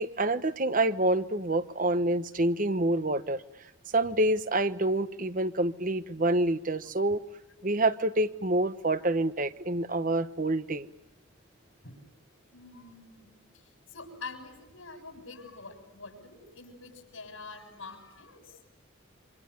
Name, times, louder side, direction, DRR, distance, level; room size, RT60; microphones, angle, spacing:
voice 1, 0.0-3.4 3.9-7.2 7.6-10.9, right 2 dB, 40° right, 12 dB, 1.1 m, -27 dB
voice 2, 12.5-18.6, left 4 dB, 90° left, 5 dB, 7.2 m, -46 dB
28.0 x 26.5 x 6.7 m, 0.98 s
head